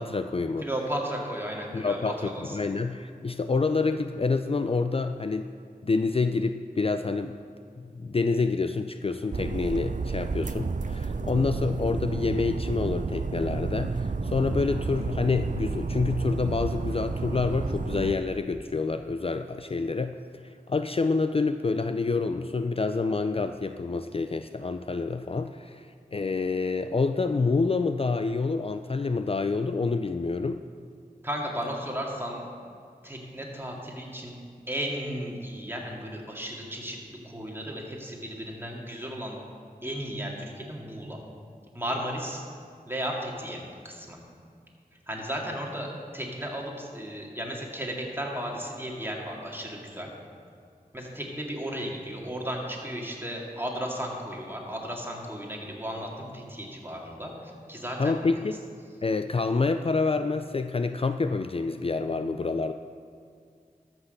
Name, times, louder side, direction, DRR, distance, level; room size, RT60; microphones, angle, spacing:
voice 1, 0.0-0.7 1.7-5.5 5.8-7.4 7.8-30.6 58.0-58.6 59.0-62.7, left 4 dB, 40° left, 8 dB, 0.4 m, -27 dB
voice 2, 0.6-2.6 31.2-32.5 33.0-34.4 34.7-39.4 39.8-41.2 41.7-42.4 42.9-44.2 45.1-50.1 50.9-58.2, equal, 15° right, -1 dB, 2.3 m, -34 dB
sound 1, 9.3-18.1, right 4 dB, 55° right, 0.5 m, -31 dB
13.5 x 6.1 x 6.6 m, 2.2 s
wide cardioid pair, 45°, 15 cm